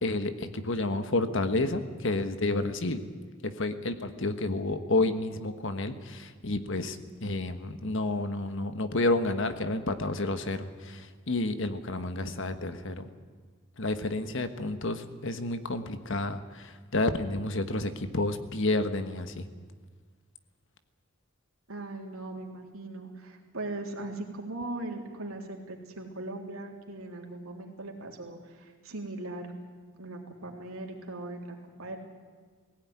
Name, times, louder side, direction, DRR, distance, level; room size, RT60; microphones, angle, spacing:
voice 1, 0.0-3.0 3.4-13.1 13.8-19.5, left 2 dB, 60° left, 9 dB, 1.4 m, -30 dB
voice 2, 21.7-29.5 30.0-32.0, right 2 dB, 85° right, 1 dB, 3.4 m, -39 dB
19.5 x 16.5 x 9.5 m, 1.6 s
head